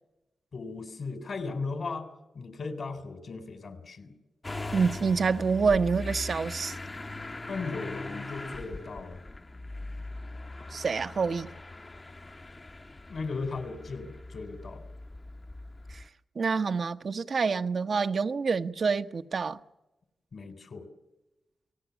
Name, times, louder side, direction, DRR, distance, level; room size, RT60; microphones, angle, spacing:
voice 1, 0.5-2.1 2.3-4.1 7.5-9.3 13.1-14.8 20.3-20.9, left 4 dB, 70° left, 3.9 m, -37 dB
Motor vehicle (road) / Engine starting, 4.4-16.1, left 2 dB, 35° left, 1.0 m, -40 dB
voice 2, 4.7-6.8 10.7-11.5 15.9-16.0 16.4-19.6, right 5 dB, 65° right, 1.0 m, -27 dB
29.5 x 18.5 x 7.2 m
cardioid pair, 45°, 0 cm